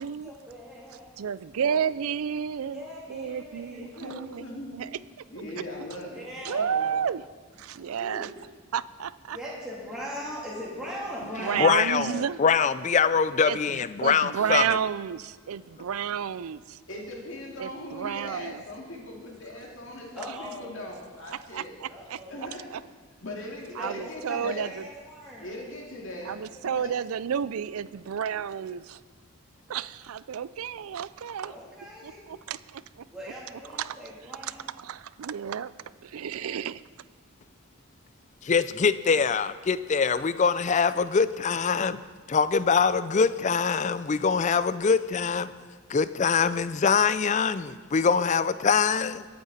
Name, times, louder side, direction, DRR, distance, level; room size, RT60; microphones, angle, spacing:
voice 1, 0.0-1.1 1.6-1.8 2.7-3.9 5.3-5.5 6.1-6.7 7.7-7.8 9.3-11.8 20.1-20.7 21.9-22.4 23.7-25.5 31.4-32.2 33.1-34.7, equal, 5° right, -7 dB, 3.2 m, -40 dB
voice 2, 1.2-4.9 6.4-7.2 7.6-8.3 8.7-9.4 11.4-12.4 13.5-16.8 17.6-18.6 21.5-22.2 22.7-22.8 23.8-24.8 26.3-29.0 29.7-31.5 32.0-33.0 33.8-34.0 34.4-35.7 36.0-36.8, right 8 dB, 75° right, 17 dB, 0.4 m, -31 dB
voice 3, 4.0-4.8 5.3-7.0 8.0-8.4 16.9-21.8 22.3-22.6 23.2-24.7 25.4-26.4 26.8-26.9, left 1 dB, 60° left, -1 dB, 2.6 m, -39 dB
voice 4, 11.6-14.6 38.4-42.0 42.3-45.5 45.9-49.2, left 5 dB, 35° left, 14 dB, 0.4 m, -23 dB
22.0 x 8.7 x 4.2 m, 1.5 s
head